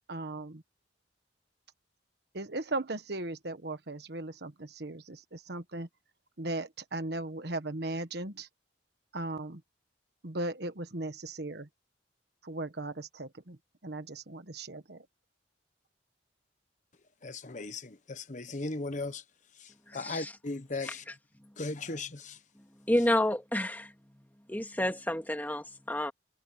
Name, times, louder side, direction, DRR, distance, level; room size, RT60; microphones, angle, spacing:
voice 1, 0.1-0.6 2.3-5.9 6.4-8.5 9.1-9.6 10.2-11.7 12.4-13.6 13.8-15.1, right 2 dB, 60° right, 1.4 m, -37 dB
voice 2, 17.2-19.2 19.9-21.0 21.6-22.4, left 3 dB, 45° left, 1.1 m, -37 dB
voice 3, 19.9-20.3 20.8-21.1 22.9-23.9 24.5-26.1, left 1 dB, 10° left, 2.4 m, -30 dB
head